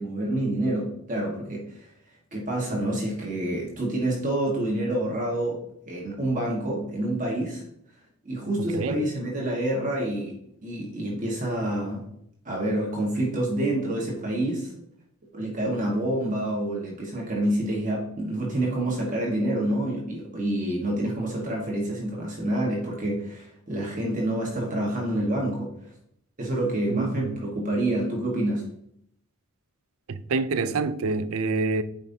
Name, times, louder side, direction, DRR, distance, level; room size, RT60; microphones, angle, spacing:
voice 1, 0.0-1.9 2.3-7.6 8.2-12.0 12.4-14.7 15.3-25.7 26.4-28.7, right 1 dB, 35° right, 1.4 m, -28 dB
voice 2, 26.9-27.3 30.1-31.8, right 3 dB, 70° right, 0.5 m, -27 dB
9.0 x 5.2 x 2.7 m
head